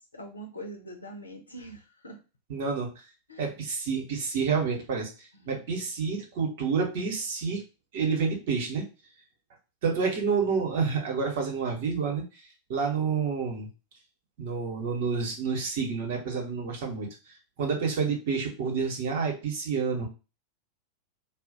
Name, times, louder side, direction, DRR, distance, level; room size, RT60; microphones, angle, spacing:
voice 1, 0.1-2.2 3.3-3.5 5.3-5.6, right 1 dB, 75° left, 3 dB, 0.7 m, -43 dB
voice 2, 2.5-2.9 3.4-7.6 7.9-8.9 9.8-12.2 12.7-13.7 14.4-17.1 17.6-20.1, right 5 dB, 55° right, 1 dB, 1.0 m, -29 dB
2.4 x 2.1 x 3.8 m, 0.30 s
figure-of-eight pair, 90°, 0 cm